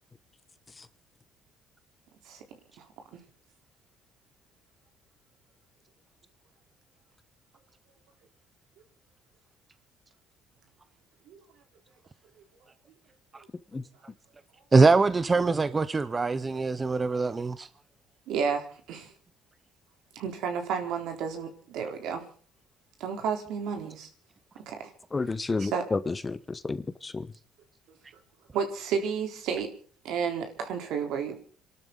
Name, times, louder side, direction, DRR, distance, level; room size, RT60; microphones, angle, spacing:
voice 1, 14.7-17.7, right 3 dB, 25° right, 0.7 m, -23 dB
voice 2, 18.3-19.1 20.2-22.2 23.0-24.1 24.7-24.9 25.6-25.8 28.5-29.7 30.0-31.4, right 6 dB, 80° right, 3.7 m, -31 dB
voice 3, 25.1-27.3, left 3 dB, 25° left, 1.1 m, -31 dB
28.0 x 12.5 x 3.9 m
cardioid pair, 105°, 0 cm